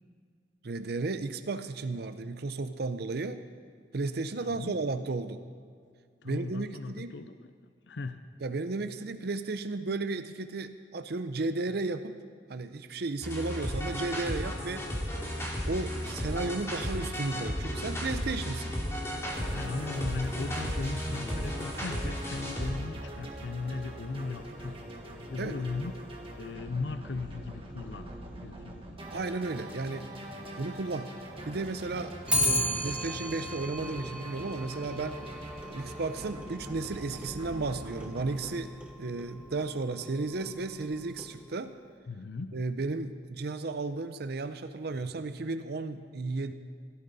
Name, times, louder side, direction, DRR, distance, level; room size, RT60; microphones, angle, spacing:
voice 1, 0.6-3.4 3.9-5.4 6.2-7.1 8.4-12.2 12.5-14.9 15.6-18.7 25.4-25.6 29.1-30.1 30.6-31.1 31.4-35.2 35.7-38.7 39.0-41.7 42.5-46.5, right 3 dB, 60° right, 10 dB, 0.6 m, -34 dB
voice 2, 4.5-4.8 6.2-7.5 7.9-8.2 19.5-26.0 26.4-28.1 28.4-28.8 42.1-42.6, left 3 dB, 70° left, 10 dB, 0.6 m, -37 dB
sound 1, 13.2-22.8, equal, 15° left, 2.6 m, -34 dB
sound 2, 19.3-38.5, right 1 dB, 30° right, 1.6 m, -43 dB
Clock, 32.3-41.6, left 1 dB, 5° right, 1.2 m, -36 dB
17.0 x 12.5 x 4.1 m, 2.1 s
head